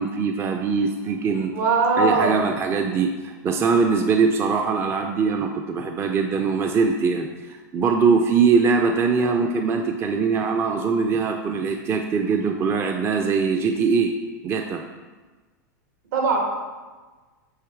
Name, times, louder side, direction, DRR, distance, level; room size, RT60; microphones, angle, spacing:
voice 1, 0.0-1.5 2.0-14.2 14.4-14.8, right 5 dB, 25° right, 4 dB, 0.5 m, -22 dB
voice 2, 1.5-2.4 16.1-16.4, right 4 dB, 70° right, 0 dB, 1.7 m, -20 dB
8.1 x 3.2 x 4.6 m, 1.3 s
hypercardioid pair, 115°, 10 cm